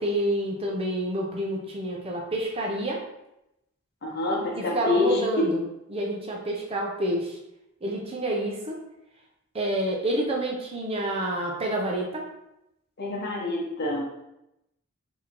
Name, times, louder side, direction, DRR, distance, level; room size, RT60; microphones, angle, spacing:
voice 1, 0.0-3.0 4.5-5.6 5.9-7.4 7.8-8.8 9.5-12.3, right 1 dB, 25° right, -1 dB, 0.6 m, -28 dB
voice 2, 4.0-5.5 13.0-14.1, left 2 dB, 50° left, -2 dB, 0.9 m, -26 dB
4.7 x 2.8 x 2.9 m, 0.86 s
head